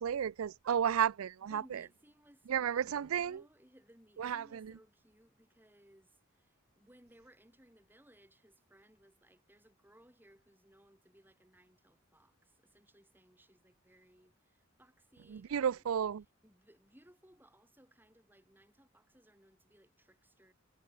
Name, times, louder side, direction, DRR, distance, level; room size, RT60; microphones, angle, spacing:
voice 1, 0.0-1.8 2.5-3.4 4.2-4.6 15.3-16.2, right 8 dB, 80° right, 0.4 m, -33 dB
voice 2, 1.4-15.9 16.4-20.5, equal, 10° right, 7.0 m, -64 dB
head